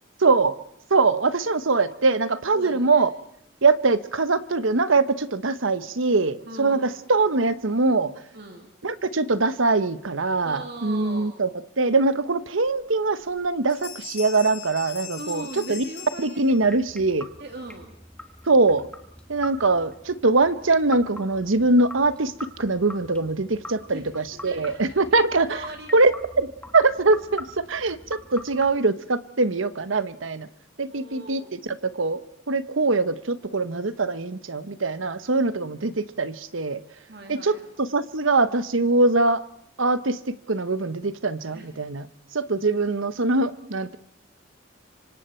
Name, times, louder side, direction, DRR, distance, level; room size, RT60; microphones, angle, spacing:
voice 1, 0.2-0.6 0.9-3.1 3.6-8.1 8.8-11.5 11.8-15.8 16.2-17.3 18.5-18.9 19.3-22.3 22.6-25.6 25.9-26.1 26.4-30.5 30.8-32.2 32.5-36.8 37.3-39.4 39.8-42.1 42.3-44.0, right 3 dB, 80° right, 13 dB, 1.1 m, -22 dB
voice 2, 2.5-3.1 6.4-6.9 8.3-8.7 10.4-11.3 15.2-16.4 17.4-17.9 23.9-24.1 24.4-25.0 25.5-25.9 30.9-31.5 37.1-37.7 41.5-41.7, right 2 dB, 55° right, 3 dB, 2.7 m, -40 dB
Bell, 12.6-12.7 13.2-13.4 13.7-16.8, left 9 dB, 55° left, 5.4 m, -40 dB
sound 1, 16.5-28.8, left 1 dB, 5° left, 1.6 m, -43 dB
27.0 x 25.0 x 4.5 m, 0.75 s
head